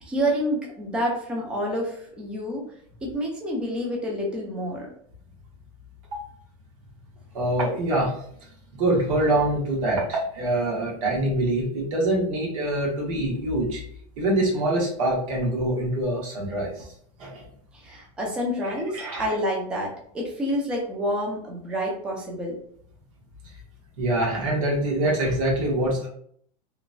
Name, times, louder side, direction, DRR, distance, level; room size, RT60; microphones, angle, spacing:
voice 1, 0.0-2.6 3.0-4.9 17.7-22.6, equal, 5° right, -2 dB, 0.4 m, -28 dB
voice 2, 7.3-8.1 8.7-13.8 14.2-16.9 17.2-17.5 18.6-19.3 24.0-26.1, right 1 dB, 55° right, -3 dB, 1.2 m, -25 dB
2.9 x 2.2 x 2.5 m, 0.63 s
supercardioid pair, 165°, 20 cm